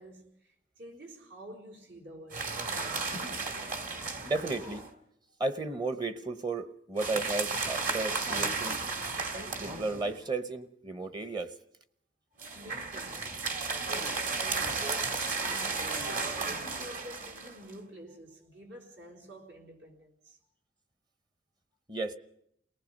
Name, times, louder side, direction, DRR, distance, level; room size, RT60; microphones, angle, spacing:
voice 1, 0.0-2.6 12.5-13.3 13.8-20.4, equal, 75° right, 4.0 m, -48 dB
sound 1, 2.3-4.9 7.0-10.2 12.4-17.7, right 4 dB, 50° right, 2.0 m, -34 dB
voice 2, 4.2-4.8 5.4-8.8 9.6-11.5 21.9-22.2, right 3 dB, 25° right, 0.9 m, -34 dB
28.5 x 19.0 x 5.3 m
head